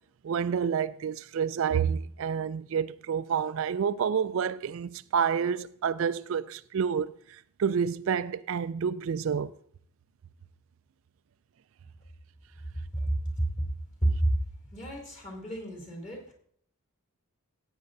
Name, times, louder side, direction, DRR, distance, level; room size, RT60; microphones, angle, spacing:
voice 1, 0.2-9.5, right 7 dB, 60° right, 0.3 m, -29 dB
voice 2, 12.9-13.5 14.0-14.3 14.7-16.3, right 1 dB, 30° left, 2.9 m, -30 dB
15.0 x 9.0 x 2.6 m
head